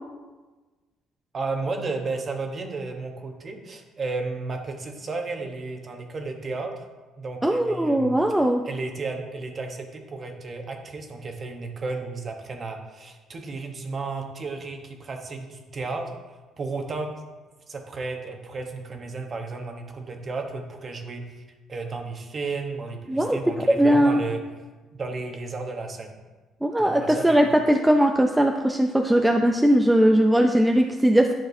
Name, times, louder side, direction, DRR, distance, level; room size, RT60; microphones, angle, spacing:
voice 1, 1.3-6.8 7.2-16.1 16.6-17.1 17.7-21.4 21.7-24.4 24.9-26.1 26.8-27.5, right 3 dB, 35° right, 4 dB, 1.0 m, -33 dB
voice 2, 7.4-8.6 23.1-23.4 23.8-24.2 26.6-31.3, right 1 dB, 5° right, 3 dB, 0.4 m, -19 dB
10.5 x 6.2 x 2.7 m, 1.2 s
cardioid pair, 125°, 0 cm